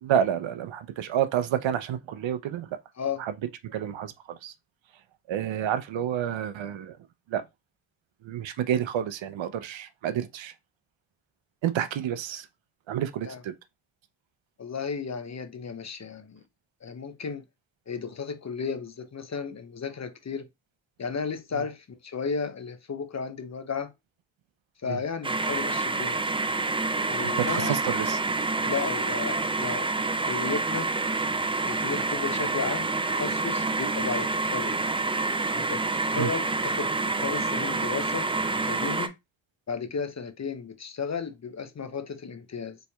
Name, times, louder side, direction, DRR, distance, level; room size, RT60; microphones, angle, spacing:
voice 1, 0.0-2.7 3.2-3.3 3.6-4.5 5.3-7.0 7.3-7.4 8.2-10.5 11.6-12.5 12.9-13.5 24.9-25.0 27.2-28.2 36.1-36.3, right 10 dB, 65° right, 0.6 m, -29 dB
voice 2, 14.6-16.4 16.8-17.4 17.9-20.5 21.0-23.9 24.8-26.2 27.1-27.8 28.6-29.9 30.2-30.9 31.6-34.8 35.5-38.3 38.6-39.1 39.7-42.8, left 5 dB, 35° left, 0.7 m, -34 dB
sound 1, 25.2-39.1, right 3 dB, 10° right, 0.4 m, -28 dB
4.2 x 3.2 x 2.2 m
supercardioid pair, 50°, 49 cm